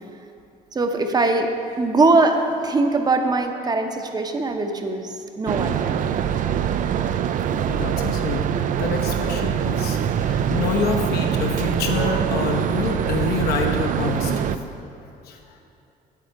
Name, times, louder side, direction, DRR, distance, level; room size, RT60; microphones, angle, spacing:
voice 1, 0.7-1.5 1.8-6.0, right 3 dB, 25° right, 5 dB, 0.7 m, -21 dB
sound 1, 5.5-14.6, right 9 dB, 50° right, 0.4 m, -24 dB
voice 2, 7.4-14.5 15.2-15.6, left 4 dB, 70° left, 2 dB, 1.0 m, -27 dB
8.4 x 7.7 x 4.7 m, 2.8 s
cardioid pair, 110°, 17 cm